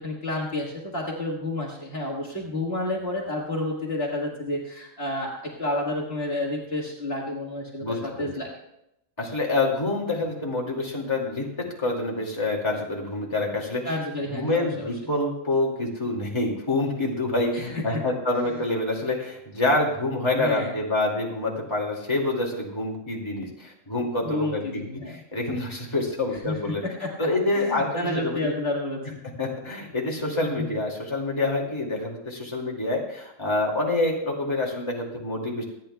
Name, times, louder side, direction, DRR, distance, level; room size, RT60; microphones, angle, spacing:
voice 1, 0.0-8.5 13.8-14.9 17.5-18.0 20.4-20.8 23.9-25.2 26.3-29.2 30.4-30.8, left 2 dB, 50° left, -3 dB, 1.9 m, -30 dB
voice 2, 7.8-8.3 9.2-13.8 14.3-24.6 25.1-26.8 27.2-28.5 29.4-35.6, left 2 dB, 20° left, -2 dB, 2.2 m, -27 dB
26.0 x 9.5 x 2.3 m, 0.82 s
omnidirectional pair, 1.3 m